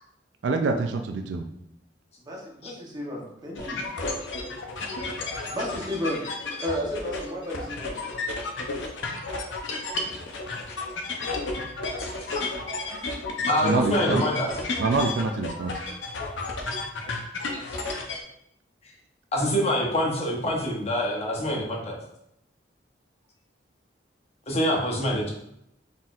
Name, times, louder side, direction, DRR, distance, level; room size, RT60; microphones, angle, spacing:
voice 1, 0.4-1.5 13.6-14.2 14.8-15.7, right 3 dB, 80° right, 5 dB, 0.4 m, -25 dB
voice 2, 2.3-3.8 5.5-7.9, equal, 25° right, -3 dB, 0.9 m, -33 dB
sound 1, 3.6-18.2, left 3 dB, 85° left, 0.6 m, -32 dB
voice 3, 13.4-14.5 19.3-22.0 24.5-25.3, equal, 35° left, -1 dB, 0.9 m, -25 dB
4.0 x 3.9 x 2.4 m, 0.77 s
head